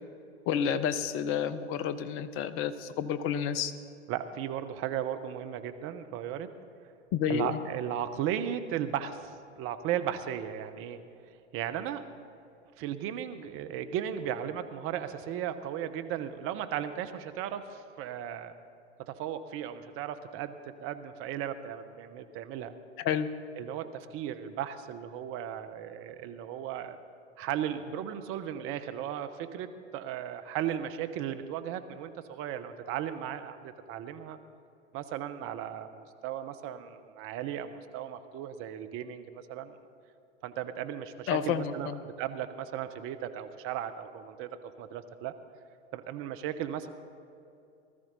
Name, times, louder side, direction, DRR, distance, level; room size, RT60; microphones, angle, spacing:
voice 1, 0.5-3.7 7.1-7.6 23.0-23.3 41.3-42.0, left 8 dB, 35° left, 13 dB, 0.8 m, -30 dB
voice 2, 4.1-6.5 7.3-11.0 11.5-12.0 12.8-18.5 19.1-20.5 20.8-22.8 23.6-27.0 27.4-34.4 34.9-39.7 40.4-45.3 45.9-46.9, right 10 dB, 40° right, 10 dB, 1.0 m, -36 dB
19.5 x 13.0 x 4.1 m, 2.6 s
hypercardioid pair, 100°, 36 cm